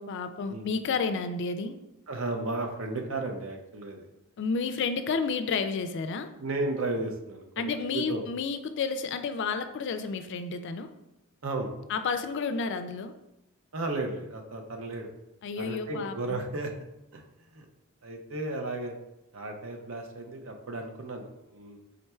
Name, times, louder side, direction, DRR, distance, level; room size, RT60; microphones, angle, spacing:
voice 1, 0.0-1.8 4.4-6.3 7.6-10.9 11.9-13.1 15.4-16.4, left 5 dB, 55° left, 9 dB, 0.3 m, -31 dB
voice 2, 2.1-4.1 6.4-8.3 11.4-11.7 13.7-15.1 15.6-16.7 17.1-17.2 17.5-17.7 18.0-18.9 19.3-21.8, right 2 dB, 65° right, 3 dB, 0.6 m, -34 dB
4.2 x 3.8 x 2.3 m, 0.89 s
head